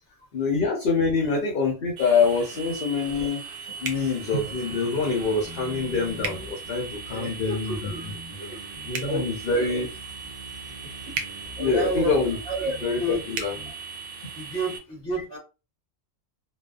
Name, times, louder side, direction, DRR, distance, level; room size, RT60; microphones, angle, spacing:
voice 1, 0.3-3.4 3.8-8.1 8.9-9.9 11.6-12.4 12.8-13.5 14.2-14.3, left 4 dB, 55° left, 0.8 m, -25 dB
sound 1, 2.0-14.8, right 5 dB, 55° right, 0.7 m, -40 dB
sound 2, 3.8-4.1 6.2-6.4 8.9-9.1 11.1-11.3 13.3-13.5, right 5 dB, 85° right, 0.9 m, -31 dB
sound 3, 4.2-13.7, right 1 dB, 25° right, 1.0 m, -44 dB
voice 2, 7.1-8.8 9.1-9.7 10.8-11.2 11.6-12.2 12.4-13.2 14.3-15.4, right 1 dB, 5° left, 0.9 m, -31 dB
2.5 x 2.3 x 2.3 m
omnidirectional pair, 1.2 m